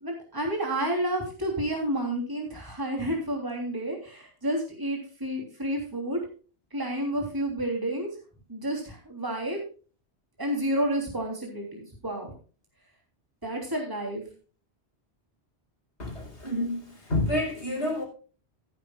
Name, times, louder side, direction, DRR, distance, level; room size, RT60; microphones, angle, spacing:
voice 1, 0.0-6.2 6.7-8.1 8.5-9.6 10.4-12.3 13.4-14.2, right 1 dB, 20° right, 3.3 m, -30 dB
voice 2, 16.0-18.0, left 1 dB, 85° left, 4.5 m, -29 dB
15.0 x 11.0 x 2.4 m
omnidirectional pair, 1.1 m